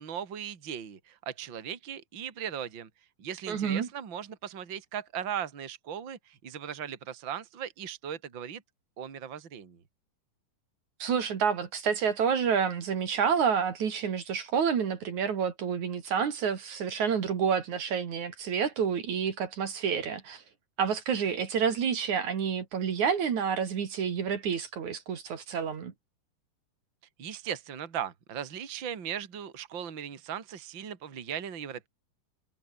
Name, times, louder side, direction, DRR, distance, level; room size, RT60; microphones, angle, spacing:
voice 1, 0.0-2.9 3.2-8.6 9.0-9.8 27.2-31.9, right 8 dB, 35° right, 2.9 m, -38 dB
voice 2, 3.5-3.9 11.0-20.4 20.8-25.9, right 7 dB, 60° right, 3.7 m, -29 dB
omnidirectional pair, 3.8 m